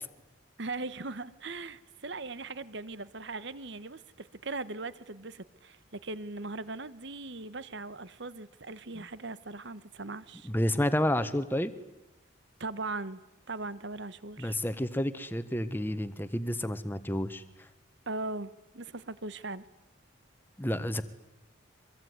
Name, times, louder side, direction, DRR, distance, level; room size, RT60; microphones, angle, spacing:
voice 1, 0.6-10.5 12.6-13.2 13.5-14.6 18.1-19.6, right 3 dB, 60° right, 16 dB, 1.2 m, -39 dB
voice 2, 10.4-11.7 14.4-17.4 20.6-21.0, left 1 dB, 10° left, 11 dB, 1.4 m, -30 dB
25.0 x 23.0 x 9.6 m, 0.94 s
head